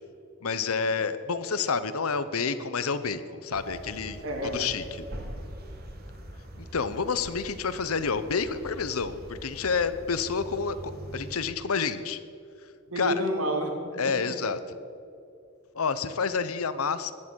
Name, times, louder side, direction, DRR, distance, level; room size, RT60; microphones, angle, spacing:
voice 1, 0.4-4.2 4.5-4.8 6.6-12.2 13.0-13.1 14.0-14.6 15.7-17.1, left 5 dB, 80° left, 13 dB, 0.8 m, -29 dB
sound 1, 3.5-11.4, equal, 45° right, 1.9 m, -43 dB
voice 2, 4.2-4.7 12.9-14.4, right 1 dB, 65° right, 3 dB, 2.5 m, -31 dB
16.0 x 11.0 x 6.3 m, 2.5 s
head